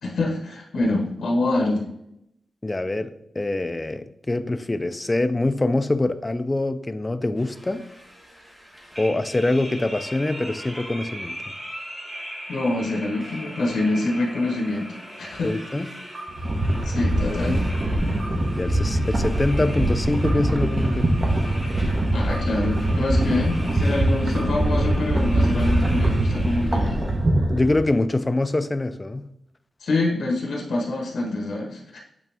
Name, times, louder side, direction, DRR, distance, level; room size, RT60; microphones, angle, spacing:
voice 1, 0.0-1.8 12.5-14.9 15.2-15.6 16.8-17.6 22.1-27.0 29.8-32.0, left 2 dB, 85° left, 1.5 m, -25 dB
voice 2, 2.6-7.8 9.0-11.5 15.4-15.9 17.4-17.7 18.5-21.3 27.5-29.3, left 2 dB, 15° left, 0.3 m, -24 dB
sound 1, 7.4-27.1, equal, 10° right, 1.3 m, -39 dB
sound 2, 16.3-27.8, right 1 dB, 30° right, 0.9 m, -23 dB
8.2 x 3.5 x 3.5 m
wide cardioid pair, 175°, 0 cm